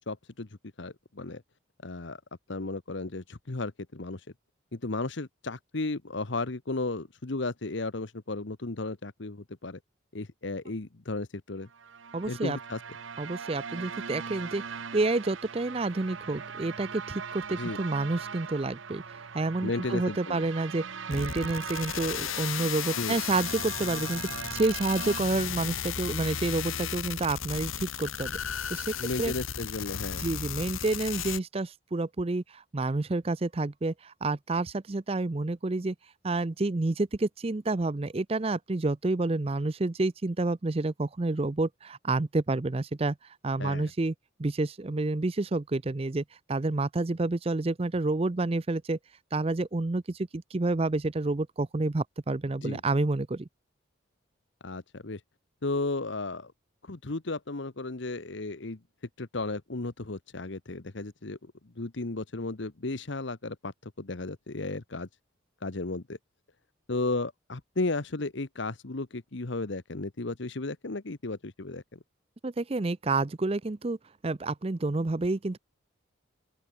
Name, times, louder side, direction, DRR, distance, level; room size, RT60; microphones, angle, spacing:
voice 1, 0.1-0.5 0.8-1.4 1.8-2.2 2.5-4.2 4.7-9.8 10.1-11.7 12.3-12.8 17.5-17.8 19.6-20.4 23.0-23.2 29.0-30.3 43.6-43.9 52.6-52.8 54.6-55.2 55.6-56.5 56.8-58.8 59.2-65.1 65.6-66.2 66.9-72.0, left 2 dB, 65° left, 1.1 m, -34 dB
sound 1, 11.7-25.2, right 6 dB, 75° right, 0.9 m, -40 dB
voice 2, 12.1-12.6 13.2-28.3 28.7-29.3 30.2-35.9 36.2-43.2 43.4-44.1 44.4-46.2 46.5-49.0 49.3-53.5 72.4-74.0 74.2-75.6, right 2 dB, 30° right, 0.5 m, -29 dB
sound 2, 21.1-31.4, left 8 dB, 90° left, 1.5 m, -35 dB
open air
head